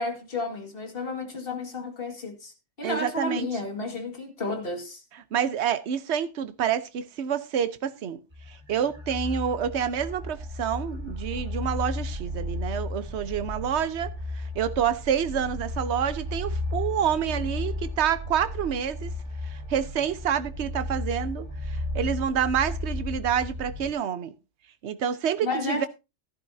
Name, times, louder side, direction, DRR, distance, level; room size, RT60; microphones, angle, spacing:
voice 1, 0.0-2.5 2.8-5.0 25.4-25.9, left 2 dB, 45° left, 2.3 m, -32 dB
voice 2, 2.8-3.5 5.1-8.2 8.5-14.1 14.3-19.1 19.4-24.3 24.8-25.9, right 8 dB, 60° right, 1.1 m, -28 dB
sound 1, 8.3-23.9, left 2 dB, 20° right, 2.2 m, -34 dB
14.0 x 12.0 x 2.7 m
omnidirectional pair, 1.3 m